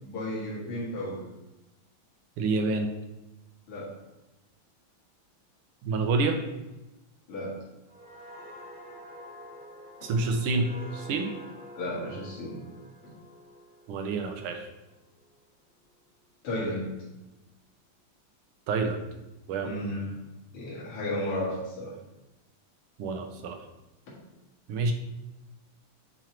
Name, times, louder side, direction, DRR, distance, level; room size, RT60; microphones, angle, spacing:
voice 1, 0.0-1.2 3.7-4.0 7.3-7.6 11.7-12.6 16.4-16.9 19.6-20.2 20.5-22.0 24.1-24.2, left 1 dB, 85° left, -7 dB, 2.7 m, -33 dB
voice 2, 2.4-2.9 5.8-6.4 10.0-11.4 13.9-14.7 18.7-19.0 19.5-19.7 23.0-23.6 24.7-24.9, right 3 dB, 85° right, 5 dB, 1.7 m, -28 dB
sound 1, 7.9-15.3 15.7-16.0, equal, 55° right, 3.3 m, -47 dB
8.9 x 3.1 x 4.4 m, 0.98 s
omnidirectional pair, 2.4 m